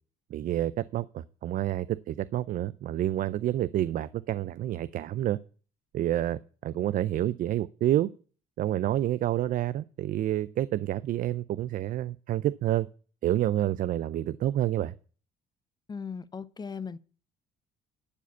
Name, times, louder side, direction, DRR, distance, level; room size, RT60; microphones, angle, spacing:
voice 1, 0.3-5.4 5.9-8.1 8.6-12.9 13.2-14.9, right 13 dB, 55° right, 0.4 m, -28 dB
voice 2, 15.9-17.0, left 5 dB, 25° left, 0.6 m, -37 dB
11.5 x 5.0 x 8.1 m
cardioid pair, 110°, 17 cm